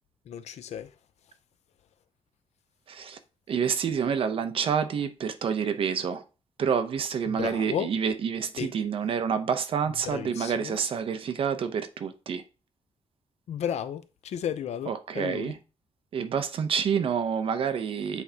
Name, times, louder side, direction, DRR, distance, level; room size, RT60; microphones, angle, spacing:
voice 1, 0.3-0.9 7.3-7.9 8.6-8.7 10.0-10.8 13.5-15.5, left 9 dB, 65° left, 0.6 m, -33 dB
voice 2, 2.9-3.2 3.5-6.2 6.6-12.4 14.9-15.6 16.1-18.2, right 7 dB, 50° right, 0.7 m, -28 dB
8.3 x 4.3 x 2.8 m
wide cardioid pair, 175°, 12 cm